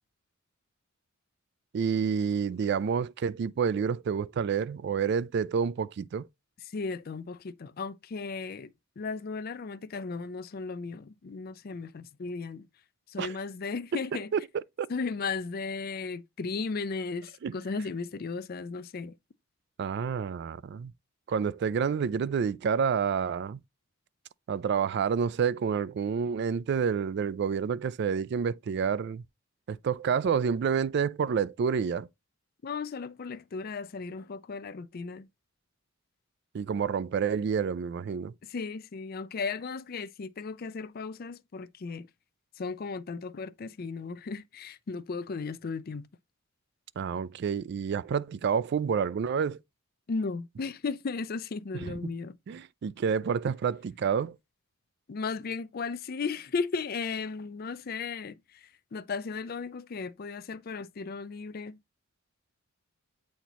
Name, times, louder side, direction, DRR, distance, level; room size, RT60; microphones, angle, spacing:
voice 1, 1.7-6.3 13.2-13.4 14.3-14.9 17.4-17.5 19.8-20.9 21.3-23.6 24.5-29.2 29.7-32.1 36.5-38.3 47.0-49.6 51.9-52.0 52.5-54.4, right 6 dB, 60° right, 0.3 m, -29 dB
voice 2, 6.7-12.7 13.1-14.3 14.9-19.1 32.6-35.3 38.4-42.1 42.6-46.1 50.1-52.4 55.1-61.8, left 4 dB, 50° left, 0.4 m, -35 dB
8.0 x 4.3 x 2.9 m
head